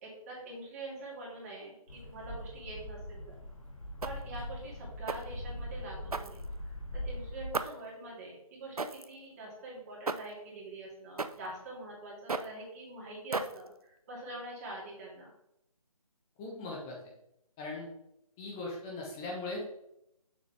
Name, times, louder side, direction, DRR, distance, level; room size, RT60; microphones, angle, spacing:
voice 1, 0.0-3.4 4.0-15.3, right 1 dB, 25° right, -4 dB, 2.4 m, -45 dB
sound 1, 1.9-7.5, left 1 dB, 60° left, 1.8 m, -42 dB
sound 2, 4.0-4.4 5.1-5.4 6.1-6.8 7.5-7.9 8.8-9.1 10.1-10.4 11.2-11.5 12.3-12.6 13.3-13.8, right 4 dB, 80° right, 0.6 m, -36 dB
voice 2, 16.4-17.0 17.6-17.9 18.4-19.6, left 2 dB, 5° left, -3 dB, 0.5 m, -39 dB
6.8 x 6.1 x 3.4 m, 0.82 s
figure-of-eight pair, 150°, 19 cm